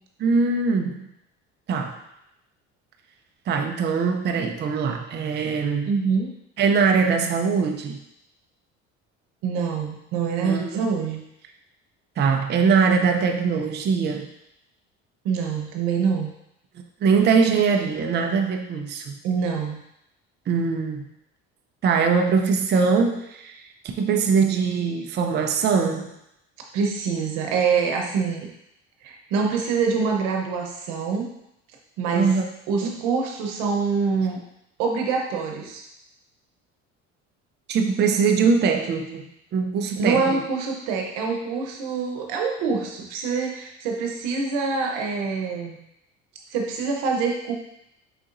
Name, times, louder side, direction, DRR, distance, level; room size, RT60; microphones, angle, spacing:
voice 1, 0.2-1.1 1.7-2.0 3.5-5.9 6.6-8.0 10.4-10.9 12.2-14.3 17.0-19.1 20.5-21.1 21.8-26.1 32.1-32.5 32.8-33.0 37.7-40.4, right 5 dB, 35° right, 4 dB, 0.5 m, -22 dB
voice 2, 5.9-6.3 9.4-11.2 15.2-16.3 19.2-19.8 26.7-28.5 29.0-31.3 32.0-32.3 32.7-34.4 34.8-35.8 40.0-45.8 46.5-47.5, right 5 dB, 85° right, 2 dB, 0.9 m, -25 dB
4.9 x 3.8 x 2.5 m, 0.81 s
supercardioid pair, 90°, 31 cm